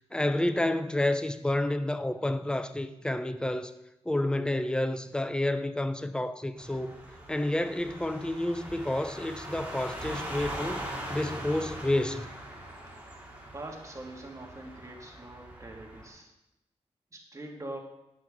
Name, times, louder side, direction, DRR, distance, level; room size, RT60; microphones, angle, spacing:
voice 1, 0.1-3.7 4.1-7.0 7.3-10.8 11.1-12.3, left 1 dB, 5° left, 0.5 m, -29 dB
sound 1, 6.6-16.1, right 1 dB, 10° right, 2.5 m, -41 dB
voice 2, 13.5-16.3 17.1-17.8, right 1 dB, 25° right, 1.8 m, -43 dB
9.5 x 6.0 x 3.6 m
cardioid pair, 60°, 12 cm